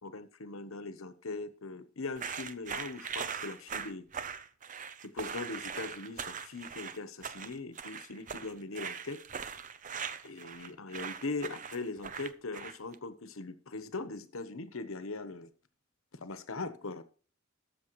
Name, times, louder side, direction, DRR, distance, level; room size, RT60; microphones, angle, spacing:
voice 1, 0.0-4.1 5.1-9.2 10.2-15.5 16.1-17.0, left 3 dB, 80° left, 12 dB, 1.1 m, -40 dB
sound 1, 2.2-12.9, right 7 dB, 40° right, 0.6 m, -40 dB
20.5 x 6.9 x 3.1 m, 0.40 s
head